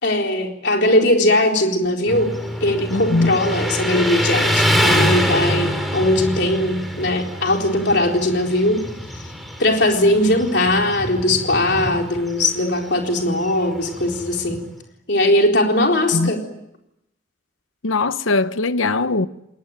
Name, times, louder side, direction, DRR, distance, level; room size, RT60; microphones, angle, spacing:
voice 1, 0.0-2.3 2.6-8.9 9.1-9.2 9.6-14.6 15.1-16.4, left 1 dB, 55° left, 4.2 m, -19 dB
Motorcycle, 2.1-14.7, equal, ahead, 4.2 m, -25 dB
voice 2, 2.9-3.4 16.1-16.3 17.8-19.3, left 3 dB, 85° left, 1.0 m, -20 dB
29.0 x 21.0 x 9.1 m
head